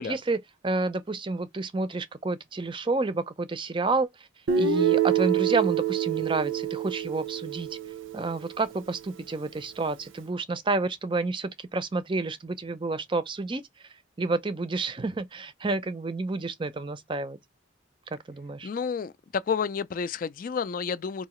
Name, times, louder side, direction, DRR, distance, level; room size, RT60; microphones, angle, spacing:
voice 1, 0.0-4.3 4.5-7.7 8.1-13.6 14.2-17.4 18.1-18.7, right 3 dB, 25° right, 0.4 m, -30 dB
Guitar, 4.5-8.4, right 8 dB, 90° right, 0.6 m, -26 dB
voice 2, 18.6-21.3, left 6 dB, 45° left, 0.3 m, -30 dB
4.6 x 2.7 x 3.0 m
head